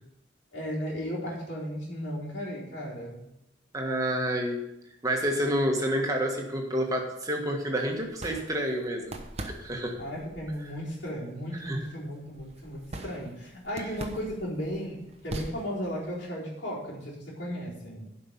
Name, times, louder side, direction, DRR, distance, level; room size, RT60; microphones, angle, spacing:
voice 1, 0.5-3.2 10.0-15.0 15.2-18.1, equal, 65° left, -5 dB, 4.2 m, -35 dB
voice 2, 3.7-4.6 5.0-9.0 9.4-9.9 11.5-11.8, equal, 20° right, 1 dB, 1.6 m, -29 dB
sound 1, 7.8-16.2, right 1 dB, 35° right, 1.0 m, -43 dB
11.5 x 5.4 x 6.9 m, 0.85 s
head